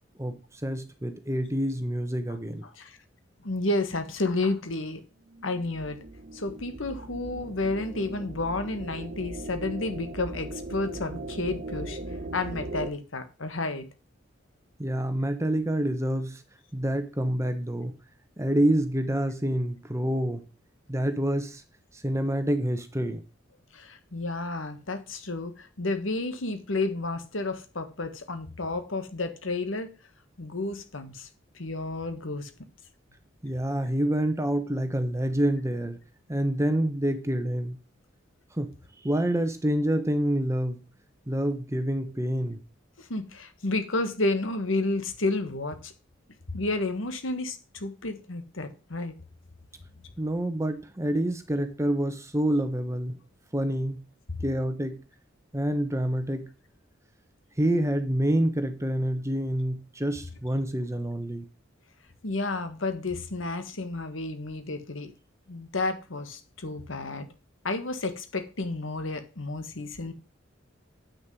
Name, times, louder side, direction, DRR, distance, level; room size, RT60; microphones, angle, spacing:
voice 1, 0.2-2.6 14.8-16.4 16.7-18.0 18.4-20.4 20.9-21.6 22.0-23.2 33.4-36.0 36.3-37.8 38.5-38.7 39.0-40.8 41.3-42.6 50.2-53.2 53.5-54.0 54.4-55.0 55.5-56.5 57.6-61.4, right 1 dB, 15° right, 1.2 m, -27 dB
voice 2, 2.6-3.0 3.4-5.0 5.4-6.0 6.3-12.0 12.3-13.9 23.7-29.9 30.4-31.3 31.5-32.5 43.0-45.9 46.5-49.1 62.2-65.1 65.5-67.3 67.6-70.1, left 2 dB, 85° left, 1.6 m, -31 dB
sound 1, 5.3-12.9, right 2 dB, 55° right, 1.3 m, -39 dB
8.6 x 6.4 x 5.5 m
head